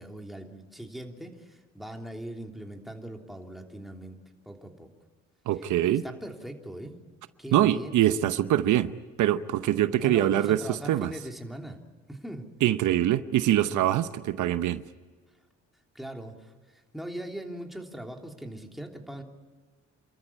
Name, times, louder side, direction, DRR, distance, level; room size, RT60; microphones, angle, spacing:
voice 1, 0.0-4.2 4.4-4.9 5.6-7.0 7.4-8.0 10.0-11.8 12.1-12.5 15.9-19.2, right 1 dB, ahead, 3.2 m, -40 dB
voice 2, 5.5-6.0 7.5-8.9 9.2-11.1 12.6-14.8, right 12 dB, 80° right, 0.9 m, -24 dB
29.0 x 13.5 x 9.8 m
cardioid pair, 90°, 30 cm